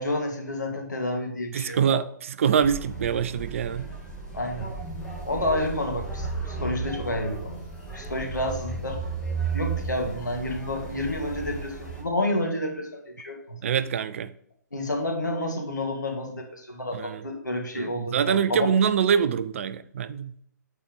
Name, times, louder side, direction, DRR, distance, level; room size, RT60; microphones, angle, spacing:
voice 1, 0.0-2.0 4.3-4.7 5.2-7.6 7.9-9.0 9.5-13.6 14.7-18.7, left 1 dB, 75° left, 2.3 m, -30 dB
voice 2, 1.5-3.9 13.6-14.3 16.9-17.2 17.8-20.4, right 7 dB, 45° right, 0.4 m, -25 dB
sound 1, 2.6-12.0, right 4 dB, 10° left, 2.3 m, -34 dB
8.3 x 4.4 x 5.2 m
figure-of-eight pair, 125°, 10 cm